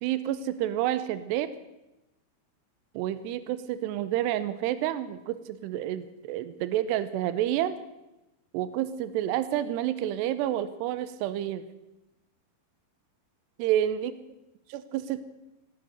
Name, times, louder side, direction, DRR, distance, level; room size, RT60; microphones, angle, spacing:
voice 1, 0.0-1.5 2.9-7.8 8.5-11.6 13.6-14.1 14.7-15.2, right 12 dB, 85° right, 13 dB, 2.4 m, -29 dB
18.5 x 10.5 x 6.7 m, 0.98 s
omnidirectional pair, 5.8 m